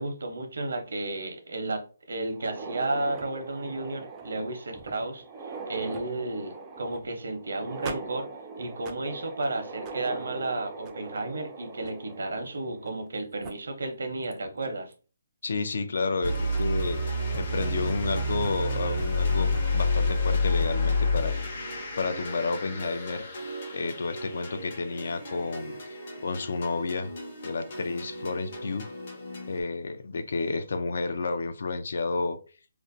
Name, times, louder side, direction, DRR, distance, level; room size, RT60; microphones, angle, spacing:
voice 1, 0.0-8.3 8.6-14.9, right 2 dB, 75° right, 0.7 m, -33 dB
sound 1, 2.3-13.1 13.4-13.5 14.3-14.4 14.9-15.0 16.3-16.6, right 4 dB, 15° right, 0.3 m, -41 dB
voice 2, 15.4-17.0 17.4-21.6 22.0-23.3 23.7-26.0 26.2-27.1 27.4-28.9 29.5-32.4, left 3 dB, 65° left, 0.4 m, -31 dB
sound 2, 16.2-29.6, left 2 dB, 45° left, 0.8 m, -30 dB
2.5 x 2.0 x 2.6 m
hypercardioid pair, 160°, 0 cm